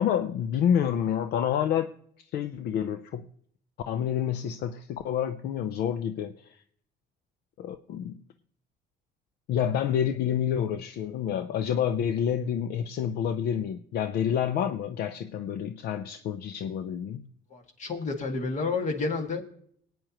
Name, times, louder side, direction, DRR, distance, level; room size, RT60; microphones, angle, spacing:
voice 1, 0.0-1.9 2.3-3.3 3.9-6.6 7.6-8.2 9.5-17.3, left 9 dB, 70° left, 10 dB, 0.6 m, -28 dB
voice 2, 17.5-19.4, left 4 dB, 45° left, 4 dB, 2.0 m, -30 dB
22.5 x 9.1 x 3.0 m, 0.64 s
cardioid pair, 110°, 17 cm